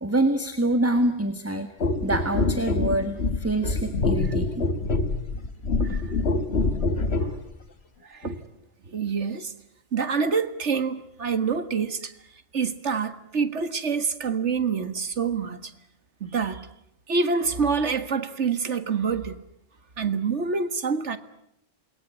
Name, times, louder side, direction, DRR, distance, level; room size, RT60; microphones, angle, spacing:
voice 1, 0.0-1.7 2.0-4.6, right 1 dB, 10° right, 1.7 m, -25 dB
sound 1, 1.8-7.4 8.2-8.4, left 3 dB, 55° left, 2.0 m, -25 dB
voice 2, 5.8-6.1 7.2-7.4 8.0-8.4 8.9-9.5 9.9-12.1 12.5-15.7 16.2-16.7 17.1-19.4 20.0-21.2, right 5 dB, 65° right, 1.9 m, -26 dB
28.0 x 22.0 x 9.8 m
omnidirectional pair, 1.3 m